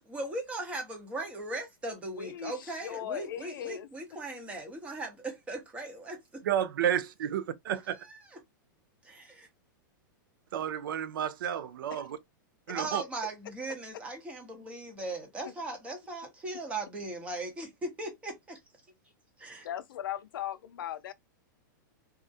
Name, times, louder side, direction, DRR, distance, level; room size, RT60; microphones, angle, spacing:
voice 1, 0.0-6.2 8.0-8.2 9.0-9.5 12.7-18.6 19.4-19.7, right 2 dB, 10° right, 0.7 m, -38 dB
voice 2, 2.1-3.9 11.9-12.0 12.7-12.8 19.6-21.1, left 11 dB, 80° left, 0.4 m, -38 dB
voice 3, 6.4-8.0 10.5-12.2 12.7-13.0, right 9 dB, 85° right, 0.4 m, -31 dB
2.3 x 2.0 x 2.5 m
supercardioid pair, 150°, 11 cm